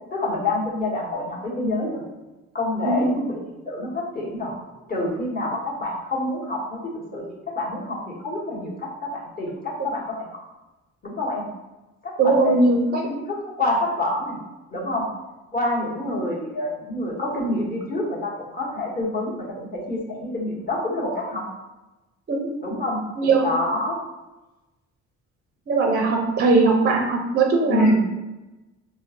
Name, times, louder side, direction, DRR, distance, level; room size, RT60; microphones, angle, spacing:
voice 1, 0.1-2.0 2.5-4.6 4.9-7.2 7.5-10.3 11.0-11.5 12.0-12.6 13.1-14.4 14.7-15.1 15.5-21.5 22.6-23.0 23.4-24.0 27.7-28.0, left 2 dB, 30° left, -4 dB, 1.0 m, -27 dB
voice 2, 2.8-3.2 12.2-13.0 22.3-22.7 23.2-23.5 25.7-28.0, right 3 dB, 35° right, 1 dB, 0.5 m, -20 dB
3.6 x 2.0 x 2.7 m, 1.1 s
cardioid pair, 90°, 30 cm